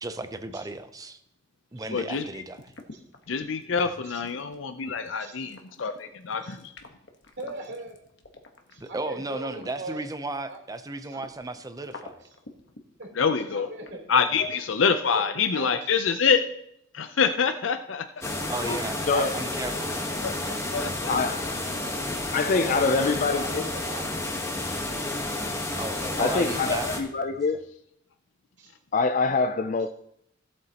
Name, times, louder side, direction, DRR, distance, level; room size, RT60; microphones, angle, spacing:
voice 1, 0.0-1.2 1.7-2.7 8.8-12.2 18.5-20.7 25.8-26.9 27.3-27.4, right 2 dB, 20° right, 0.6 m, -35 dB
voice 2, 1.9-2.2 3.3-6.7 13.2-13.7 14.1-16.4 16.9-18.0 20.2-20.3 20.7-21.1 26.3-26.4, left 6 dB, 90° left, 0.6 m, -26 dB
sound 1, 2.0-10.1 10.5-13.9, left 3 dB, 65° left, 1.2 m, -47 dB
voice 3, 7.4-8.0 8.7-10.0 10.5-10.6 11.1-11.2 13.0-13.1 13.5-14.0 14.3-14.4 15.1-15.9 17.0-17.2 18.2-18.3 20.6-20.8 21.4-21.5 21.8-21.9 22.3-24.2 28.6-28.7 29.3-29.5, right 2 dB, 65° right, 3.5 m, -40 dB
sound 2, 18.2-27.0, left 2 dB, 15° left, 1.2 m, -31 dB
voice 4, 21.1-21.6 22.3-23.7 26.2-27.6 28.9-29.9, left 4 dB, 45° left, 0.4 m, -25 dB
16.5 x 7.8 x 2.9 m
head